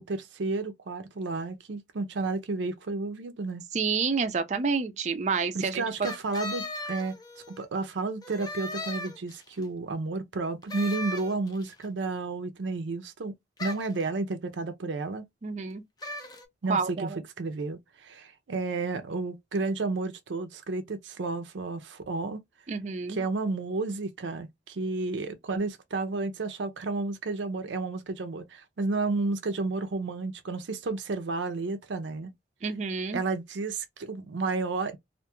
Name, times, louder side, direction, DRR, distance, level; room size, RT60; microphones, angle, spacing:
voice 1, 0.0-3.7 5.5-7.2 7.5-13.3 13.6-15.2 16.6-17.1 17.4-22.4 23.1-32.3 33.1-35.0, right 3 dB, 85° right, 0.5 m, -32 dB
voice 2, 3.7-6.1 15.4-15.8 16.7-17.2 22.7-23.2 32.6-33.2, right 5 dB, 40° right, 0.4 m, -29 dB
sound 1, 6.0-7.7 8.2-9.6 10.7-11.7 13.6-14.0 16.0-16.4, left 2 dB, 20° left, 0.5 m, -37 dB
2.5 x 2.3 x 2.9 m
head